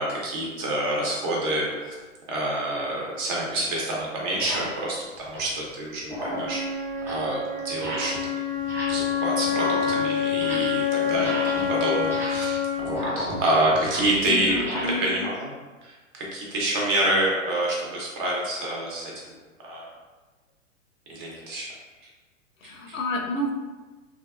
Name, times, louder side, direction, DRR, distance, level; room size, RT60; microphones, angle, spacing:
voice 1, 0.0-1.9 2.3-8.2 8.9-15.5 15.8-19.1 19.6-19.9 21.1-21.7 22.6-23.0, right 1 dB, 40° right, -3 dB, 0.9 m, -27 dB
sound 1, 2.8-2.9 3.6-3.7 4.3-4.8 5.1-5.6 6.0-6.6 6.9-7.3 7.7-8.3 8.6-9.1 9.4-10.8 11.1-14.8, equal, 5° right, 0.5 m, -35 dB
Wind instrument woodwind instrument, 6.2-14.2, left 6 dB, 90° right, 0.9 m, -27 dB
voice 2, 14.3-15.3 22.6-23.5, left 1 dB, 80° left, 1 dB, 0.6 m, -30 dB
2.6 x 2.4 x 2.3 m, 1.3 s
hypercardioid pair, 110°, 39 cm